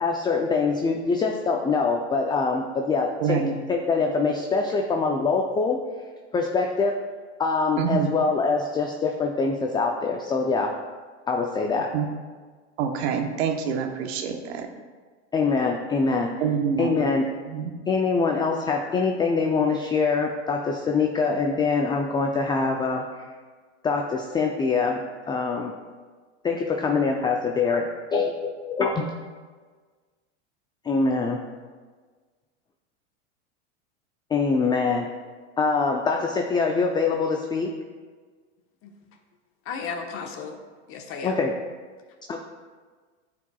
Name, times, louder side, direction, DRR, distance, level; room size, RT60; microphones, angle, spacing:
voice 1, 0.0-3.4 3.7-5.8 6.3-7.0 7.4-10.7 11.3-11.9 15.3-16.3 16.8-17.2 17.9-23.3 23.8-25.7 26.4-29.1 30.8-31.4 34.3-35.1 35.6-37.7 41.2-41.5 42.3-42.4, left 4 dB, 15° left, 2 dB, 0.4 m, -24 dB
voice 2, 3.2-3.5 7.8-8.1 11.9-12.1 12.8-14.7 16.4-17.0 17.4-17.7, right 7 dB, 65° right, 5 dB, 1.0 m, -26 dB
voice 3, 39.7-40.6 40.9-41.3, left 5 dB, 40° left, 3 dB, 1.2 m, -34 dB
14.0 x 4.7 x 2.3 m, 1.5 s
hypercardioid pair, 110°, 35 cm